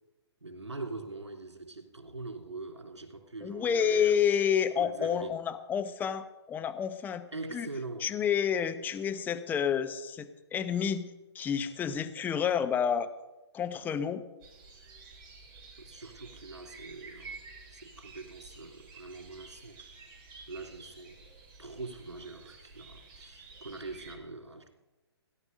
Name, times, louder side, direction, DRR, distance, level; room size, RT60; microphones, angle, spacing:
voice 1, 0.4-4.2 4.8-5.4 7.3-8.1 15.8-17.4 17.7-21.3 21.6-24.7, right 3 dB, 85° right, 4 dB, 3.0 m, -43 dB
voice 2, 3.4-7.2 7.5-7.7 8.0-11.0 11.3-13.1 13.5-14.2, left 8 dB, 10° left, 9 dB, 0.8 m, -29 dB
sound 1, 14.4-24.2, right 4 dB, 30° right, 3.4 m, -51 dB
17.0 x 11.0 x 5.2 m, 1.0 s
figure-of-eight pair, 130°, 14 cm